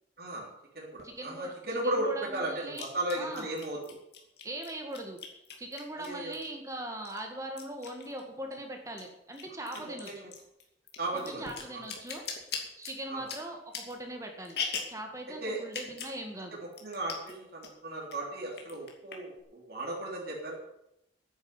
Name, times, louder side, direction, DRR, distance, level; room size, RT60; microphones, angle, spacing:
voice 1, 0.2-0.5 0.7-4.0 6.0-6.3 9.7-10.3 11.0-11.4 11.7-11.8 13.1-13.2 15.4-15.6 16.5-20.6, right 1 dB, 55° right, -3 dB, 3.4 m, -35 dB
sound 1, 1.0-1.1 2.7-6.7 7.1-8.6 8.9-15.0 15.6-16.2 16.5-16.6 16.7-17.3 17.6-18.2 18.5-19.4, left 6 dB, 60° left, 2.8 m, -40 dB
voice 2, 1.0-1.5 1.8-2.9 3.1-3.5 4.4-5.2 5.6-10.1 11.1-12.3 12.7-14.6 14.9-16.6, right 1 dB, 15° right, 3 dB, 1.8 m, -40 dB
10.0 x 9.0 x 9.7 m, 0.82 s
head